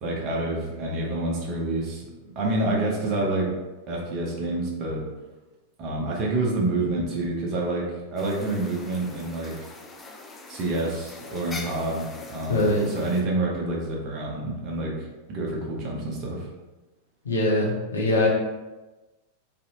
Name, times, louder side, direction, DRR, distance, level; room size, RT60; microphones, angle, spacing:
voice 1, 0.0-2.1 2.4-3.5 3.9-5.0 5.8-9.7 10.5-16.5, right 2 dB, 40° right, -2 dB, 0.7 m, -28 dB
sound 1, 8.2-13.2, left 3 dB, 15° left, 0.3 m, -42 dB
voice 2, 12.5-12.9 17.2-18.3, left 1 dB, 70° left, -2 dB, 0.6 m, -23 dB
2.7 x 2.4 x 2.8 m, 1.1 s
figure-of-eight pair, 90°, 0 cm